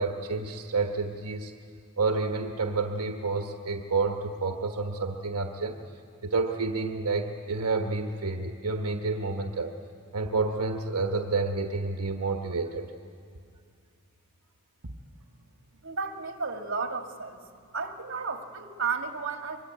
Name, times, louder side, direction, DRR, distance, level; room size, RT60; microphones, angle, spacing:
voice 1, 0.0-1.5 2.0-5.8 6.2-9.7 10.1-12.9, right 3 dB, 80° right, 4 dB, 1.2 m, -29 dB
voice 2, 15.8-17.5 17.7-19.6, right 5 dB, 55° right, 4 dB, 2.0 m, -33 dB
24.5 x 23.0 x 9.3 m, 2.3 s
head